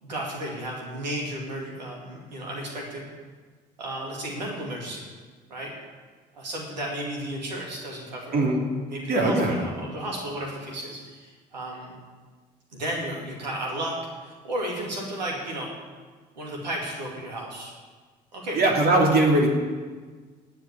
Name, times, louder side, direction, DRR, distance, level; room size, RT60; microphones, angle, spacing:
voice 1, 0.0-3.1 3.8-5.0 5.5-5.7 6.3-8.6 8.9-11.9 12.7-15.7 16.4-17.7 18.3-18.8, right 1 dB, 90° right, -1 dB, 2.5 m, -33 dB
voice 2, 9.1-9.5 18.5-19.5, right 2 dB, 45° right, -1 dB, 2.9 m, -20 dB
10.5 x 8.8 x 9.8 m, 1.4 s
hypercardioid pair, 55°, 21 cm